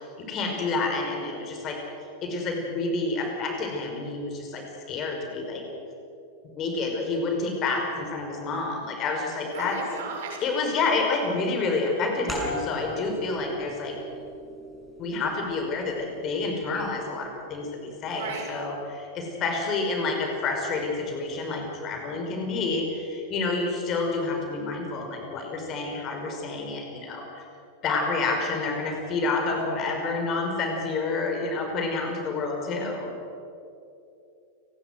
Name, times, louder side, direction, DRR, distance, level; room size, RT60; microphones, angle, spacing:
voice 1, 0.3-1.8 2.2-5.6 6.6-9.8 10.4-13.9 15.0-27.4 27.8-33.1, left 3 dB, 35° left, 2 dB, 5.3 m, -29 dB
voice 2, 9.5-10.4 18.1-18.5, right 4 dB, 55° right, 0 dB, 6.9 m, -35 dB
sound 1, 12.3-17.6, equal, 5° left, 7.1 m, -39 dB
30.0 x 19.5 x 6.4 m, 2.7 s
figure-of-eight pair, 90°, 0 cm